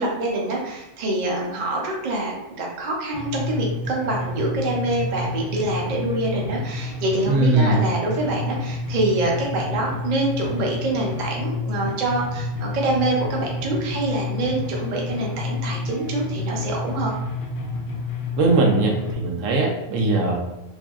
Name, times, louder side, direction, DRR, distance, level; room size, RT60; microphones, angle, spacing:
voice 1, 0.0-17.1, right 2 dB, 50° right, -2 dB, 0.5 m, -25 dB
sound 1, 3.1-19.1, left 3 dB, 65° left, 0.5 m, -29 dB
voice 2, 7.3-7.8 18.4-20.4, right 2 dB, 75° right, 1 dB, 0.9 m, -20 dB
2.6 x 2.5 x 2.3 m, 0.93 s
omnidirectional pair, 1.4 m